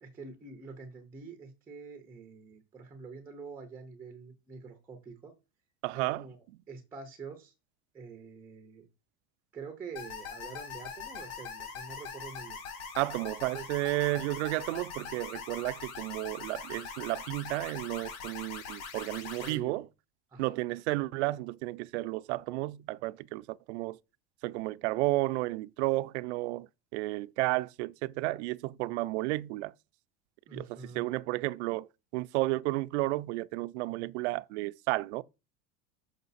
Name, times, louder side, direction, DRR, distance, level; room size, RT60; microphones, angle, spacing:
voice 1, 0.0-5.3 5.9-6.4 6.7-7.5 7.9-8.9 9.5-12.6 13.5-13.7 19.4-19.8 20.3-20.6 30.5-31.0, right 5 dB, 5° right, 0.4 m, -46 dB
voice 2, 5.8-6.2 13.0-19.8 20.4-24.0 24.4-29.7 30.5-35.2, right 20 dB, 75° right, 0.5 m, -32 dB
sound 1, 10.0-19.6, left 6 dB, 55° left, 3.3 m, -42 dB
6.6 x 5.0 x 4.0 m
cardioid pair, 180°, 34 cm